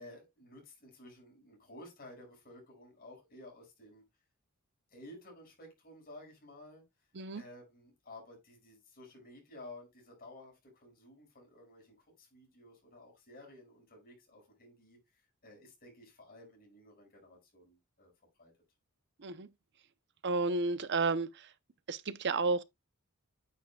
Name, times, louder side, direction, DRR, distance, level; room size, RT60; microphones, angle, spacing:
voice 1, 0.0-4.0 4.9-6.9 7.3-18.1 18.4-18.5, left 1 dB, 40° left, 5.6 m, -54 dB
voice 2, 20.2-21.5 21.9-22.6, right 3 dB, 50° right, 0.7 m, -31 dB
9.3 x 7.4 x 2.3 m
head